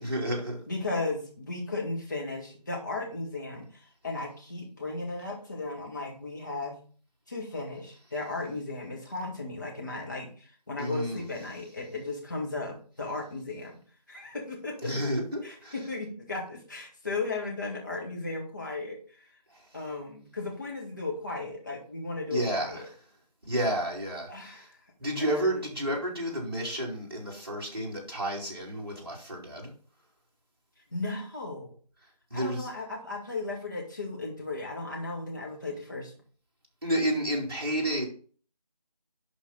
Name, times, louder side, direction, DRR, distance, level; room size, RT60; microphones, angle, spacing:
voice 1, 0.0-0.6 10.8-11.2 14.8-15.7 19.5-19.6 22.3-22.8 23.5-24.7 25.0-29.7 32.3-32.7 36.8-38.1, right 1 dB, 35° right, 2.7 m, -31 dB
voice 2, 0.7-6.8 7.3-13.8 14.1-14.9 15.4-19.2 19.7-22.8 24.3-24.8 25.2-25.6 30.9-31.8 32.3-36.1, left 3 dB, 30° left, 2.0 m, -35 dB
11.0 x 4.5 x 3.9 m
figure-of-eight pair, 170°, 21 cm